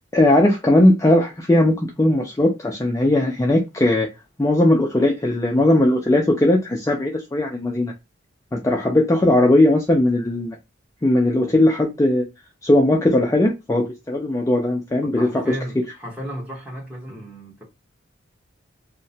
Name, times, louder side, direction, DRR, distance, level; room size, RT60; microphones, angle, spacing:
voice 1, 0.1-4.1 4.4-7.9 8.5-10.6 11.0-12.2 12.6-15.6, left 1 dB, 15° left, 0.3 m, -18 dB
voice 2, 15.0-17.6, equal, 10° right, 1.0 m, -34 dB
2.8 x 2.1 x 2.6 m
head